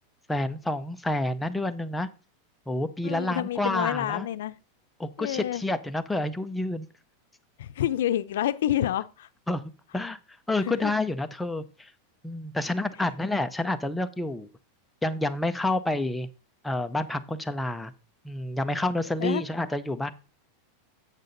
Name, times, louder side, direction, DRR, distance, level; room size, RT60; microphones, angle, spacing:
voice 1, 0.3-2.1 2.7-4.3 5.0-6.9 9.5-9.6 9.9-10.2 10.5-11.9 12.2-14.5 15.0-16.3 16.6-17.9 18.2-20.1, left 2 dB, 5° left, 0.5 m, -29 dB
voice 2, 3.0-4.5 5.2-5.6 7.6-9.3 10.6-10.9 19.2-19.4, left 12 dB, 80° left, 0.5 m, -28 dB
8.2 x 6.6 x 3.9 m
supercardioid pair, 155°, 0 cm